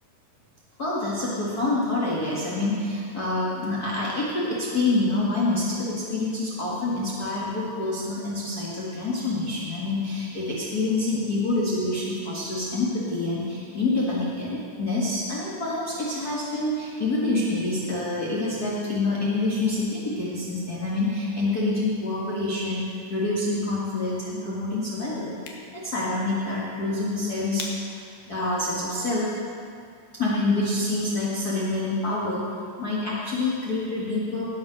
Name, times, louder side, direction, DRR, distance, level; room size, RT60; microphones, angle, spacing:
voice 1, 0.8-25.4 25.7-29.3 30.2-34.4, left 2 dB, 40° left, -7 dB, 1.5 m, -27 dB
sound 1, 25.2-30.3, left 4 dB, 70° left, 3.1 m, -45 dB
18.5 x 7.5 x 6.2 m, 2.4 s
omnidirectional pair, 4.5 m